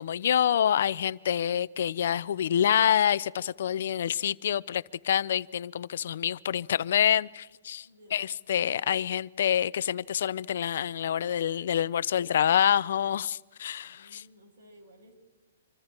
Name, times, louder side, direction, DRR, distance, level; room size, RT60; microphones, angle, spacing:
voice 1, 0.0-14.2, left 9 dB, 60° left, 0.6 m, -27 dB
voice 2, 7.8-8.2 13.8-15.2, left 1 dB, 65° right, 6.6 m, -56 dB
27.0 x 25.0 x 4.5 m
hypercardioid pair, 160°, 0 cm